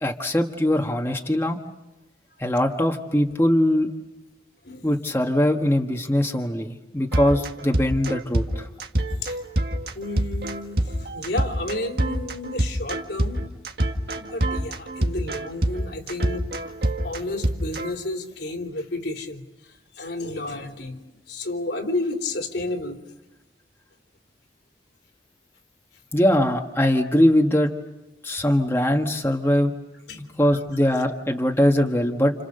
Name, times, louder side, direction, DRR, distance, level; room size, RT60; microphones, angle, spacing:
voice 1, 0.0-1.6 2.4-3.9 4.8-8.7 26.1-27.7 28.2-29.7 30.1-32.3, left 1 dB, 15° left, 2 dB, 1.5 m, -21 dB
sound 1, 7.1-17.9, right 1 dB, 60° right, 1.9 m, -26 dB
voice 2, 8.9-9.4 9.9-13.4 14.1-16.7 17.0-19.4 20.0-21.0 21.3-23.0 30.1-30.2, left 2 dB, 75° left, 3 dB, 3.3 m, -31 dB
30.0 x 29.0 x 6.7 m, 1.0 s
head